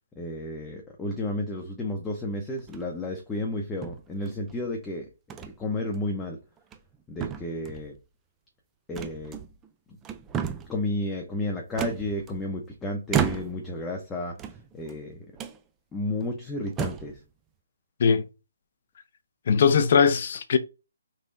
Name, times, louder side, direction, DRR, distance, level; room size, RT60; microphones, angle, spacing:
voice 1, 0.2-5.1 5.6-6.4 7.1-7.9 8.9-9.4 9.9-10.0 10.7-15.3 15.9-17.2, left 1 dB, 10° left, 0.7 m, -32 dB
sound 1, 2.6-3.0 3.8-4.6 5.3-5.5 5.9-6.1 6.6-6.9 7.2-7.9 8.9-9.7 10.0-10.8 11.8-12.6 13.1-13.7 14.3-15.0 15.4-15.6 16.2-16.3 16.7-17.2, right 8 dB, 15° right, 0.3 m, -32 dB
voice 2, 19.5-20.6, left 6 dB, 50° left, 0.5 m, -20 dB
4.2 x 3.4 x 2.6 m
hypercardioid pair, 160°, 0 cm